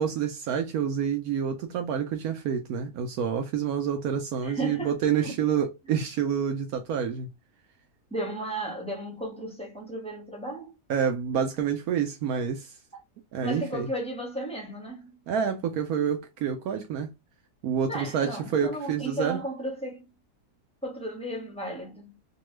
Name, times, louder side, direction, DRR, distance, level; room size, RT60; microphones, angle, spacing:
voice 1, 0.0-7.3 10.9-12.7 13.3-13.9 15.3-17.1 17.6-19.4, right 7 dB, 75° right, 1.0 m, -28 dB
voice 2, 4.4-5.4 8.1-10.7 12.9-13.0 13.4-15.1 17.9-20.1 20.8-22.2, right 1 dB, 10° left, 0.4 m, -34 dB
2.9 x 2.2 x 3.1 m
omnidirectional pair, 1.7 m